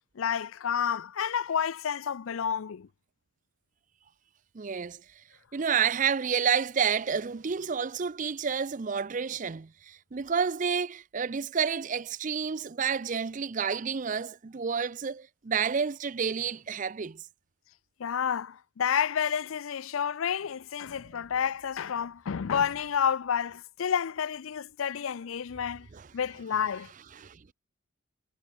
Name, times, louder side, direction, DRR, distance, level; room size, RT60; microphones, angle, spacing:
voice 1, 0.2-2.9 18.0-25.9 26.1-26.9, left 7 dB, 80° left, 0.5 m, -30 dB
voice 2, 4.5-5.0 5.5-17.2 25.9-26.1 27.2-27.5, right 6 dB, 40° right, 0.5 m, -30 dB
head